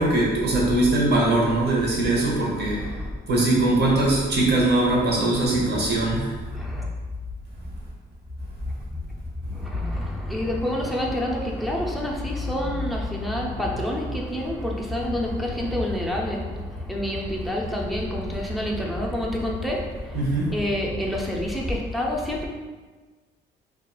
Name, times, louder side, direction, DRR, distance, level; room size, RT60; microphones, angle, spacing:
voice 1, 0.0-2.9 3.3-6.3 20.1-20.5, right 2 dB, 55° right, -4 dB, 0.9 m, -21 dB
voice 2, 2.7-3.2 6.5-6.9 8.9-9.0 9.4-22.5, left 1 dB, ahead, -2 dB, 0.4 m, -28 dB
2.8 x 2.3 x 2.3 m, 1.4 s
cardioid pair, 90°, 20 cm